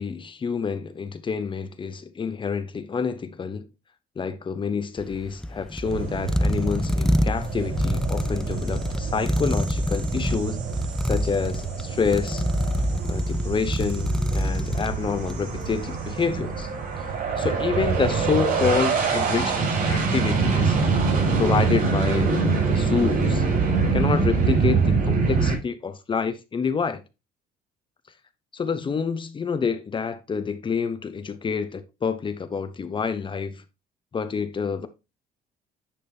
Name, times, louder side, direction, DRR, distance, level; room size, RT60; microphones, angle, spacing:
voice 1, 0.0-3.7 4.2-10.6 11.0-12.4 13.0-16.7 17.0-17.1 17.4-20.8 21.4-23.4 23.9-27.0 28.5-33.6 34.1-34.9, left 5 dB, 30° left, 0.8 m, -28 dB
sound 1, 5.0-15.6, equal, 5° left, 0.4 m, -27 dB
sound 2, 5.9-25.6, right 4 dB, 60° right, 4.8 m, -25 dB
10.0 x 5.1 x 2.7 m
cardioid pair, 110°, 17 cm